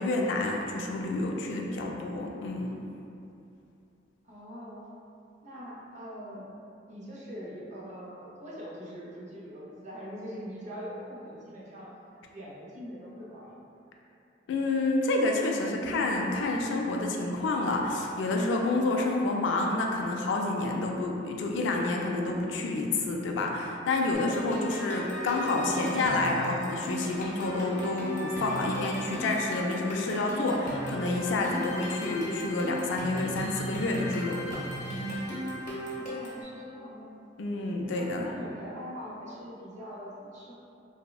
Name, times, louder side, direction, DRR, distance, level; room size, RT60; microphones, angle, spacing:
voice 1, 0.0-2.8 14.5-34.6 37.4-38.3, left 2 dB, 75° left, 0 dB, 0.3 m, -29 dB
voice 2, 4.2-4.8 5.4-6.5 6.9-11.9 12.3-13.6 35.8-37.1 37.9-40.5, equal, 40° right, -6 dB, 0.5 m, -42 dB
sound 1, 24.1-36.4, equal, 40° left, 0.7 m, -36 dB
3.4 x 2.0 x 2.3 m, 2.6 s
head